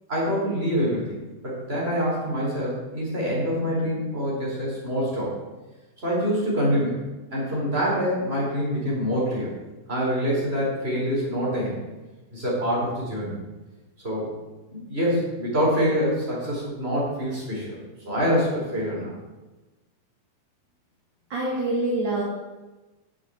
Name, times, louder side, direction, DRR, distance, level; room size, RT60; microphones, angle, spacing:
voice 1, 0.1-1.2 1.4-5.3 6.0-7.0 7.3-9.5 9.9-11.8 12.3-13.4 14.0-14.4 14.7-17.8 18.1-19.1, equal, 15° right, -5 dB, 4.3 m, -25 dB
voice 2, 21.3-22.2, right 2 dB, 35° right, -5 dB, 2.4 m, -25 dB
9.3 x 7.4 x 7.9 m, 1.2 s
omnidirectional pair, 4.3 m